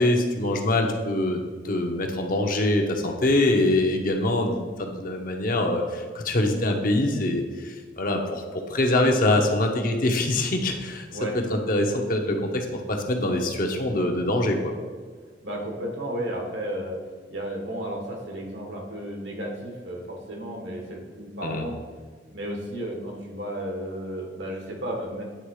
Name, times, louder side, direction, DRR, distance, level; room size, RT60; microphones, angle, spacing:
voice 1, 0.0-1.4 1.6-8.4 8.7-11.1 11.5-14.7 21.4-21.6, left 1 dB, 50° left, 3 dB, 0.9 m, -24 dB
voice 2, 15.4-17.0 17.3-21.8 22.3-25.2, right 1 dB, 75° right, 0 dB, 1.5 m, -33 dB
9.1 x 3.6 x 4.9 m, 1.5 s
head